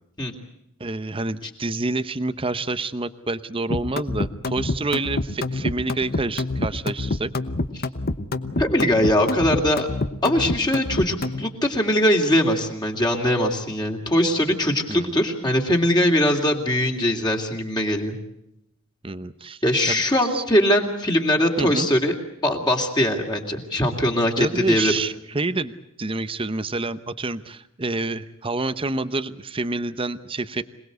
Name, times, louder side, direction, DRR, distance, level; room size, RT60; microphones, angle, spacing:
voice 1, 0.8-7.3 14.9-15.1 19.0-20.4 21.6-21.9 24.4-25.7 26.0-30.6, right 3 dB, 25° right, 12 dB, 0.8 m, -28 dB
sound 1, 3.7-11.4, left 2 dB, 45° left, 1.0 m, -26 dB
voice 2, 8.6-9.9 10.2-18.2 19.6-22.1 22.4-24.9, left 1 dB, 20° left, 1 dB, 2.8 m, -21 dB
27.0 x 19.5 x 8.1 m, 0.81 s
head